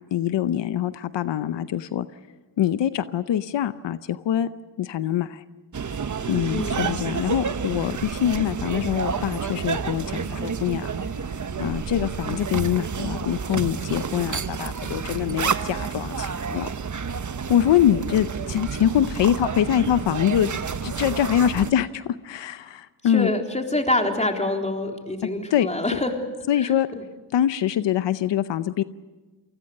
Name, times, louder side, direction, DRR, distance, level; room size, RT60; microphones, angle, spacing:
voice 1, 0.1-2.1 2.6-4.5 4.8-5.4 6.3-10.9 11.6-16.7 17.5-20.5 20.8-23.3 25.5-26.0 26.5-26.9 27.3-28.8, left 10 dB, 90° left, 13 dB, 0.8 m, -24 dB
sound 1, 5.7-21.7, right 6 dB, 45° right, 1.2 m, -29 dB
voice 2, 6.5-6.9 23.0-26.2 26.6-27.0, left 1 dB, 15° left, 2 dB, 3.8 m, -26 dB
28.0 x 20.5 x 6.6 m, 1.3 s
cardioid pair, 60°, 42 cm